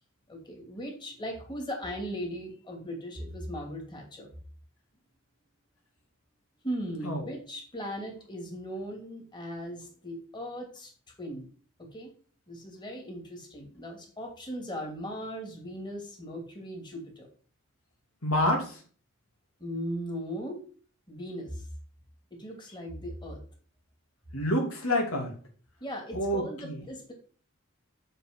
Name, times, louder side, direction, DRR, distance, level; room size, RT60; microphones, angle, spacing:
voice 1, 0.3-4.3 6.6-10.9 11.2-11.5 11.9-12.1 12.5-17.3 19.6-20.6 21.1-21.6 22.4-23.4 25.8-27.1, equal, 20° left, 1 dB, 2.8 m, -38 dB
voice 2, 7.0-7.4 18.2-18.8 24.3-25.3 26.1-26.8, left 1 dB, 80° left, 1 dB, 3.0 m, -28 dB
7.1 x 6.8 x 6.1 m, 0.42 s
head